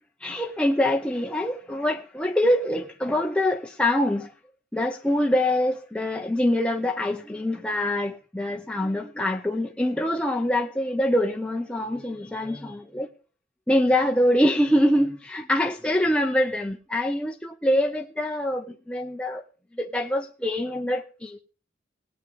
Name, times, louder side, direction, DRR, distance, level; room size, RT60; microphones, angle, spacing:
voice 1, 0.2-4.3 4.7-13.1 13.7-19.4 19.7-21.4, left 1 dB, 5° left, 0.7 m, -24 dB
19.0 x 9.1 x 3.5 m
head